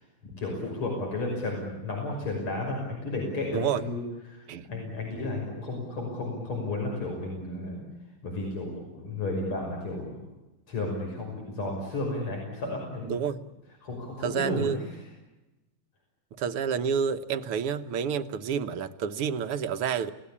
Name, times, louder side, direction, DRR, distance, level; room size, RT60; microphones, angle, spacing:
voice 1, 0.2-4.0 4.3-7.8 8.2-10.2 10.7-13.1 13.8-14.8, left 2 dB, 75° left, 6.8 m, -33 dB
voice 2, 3.5-3.8 4.5-4.7 13.0-13.4 14.2-14.8 16.4-20.1, right 7 dB, 85° right, 2.0 m, -29 dB
29.5 x 18.0 x 8.6 m
omnidirectional pair, 2.4 m